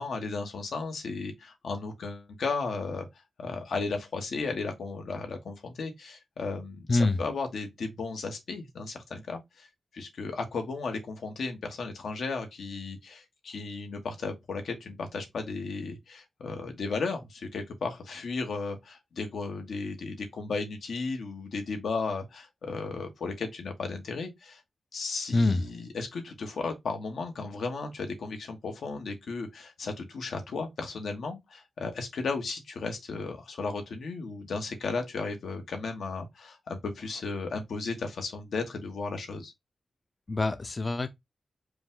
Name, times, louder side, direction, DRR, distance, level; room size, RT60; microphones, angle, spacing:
voice 1, 0.0-3.1 3.4-9.7 9.9-24.6 24.9-39.5, left 4 dB, 90° left, 1.2 m, -35 dB
voice 2, 6.9-7.2 25.3-25.6 40.3-41.1, left 2 dB, 30° left, 0.4 m, -25 dB
5.0 x 2.3 x 3.7 m
wide cardioid pair, 140°, 0 cm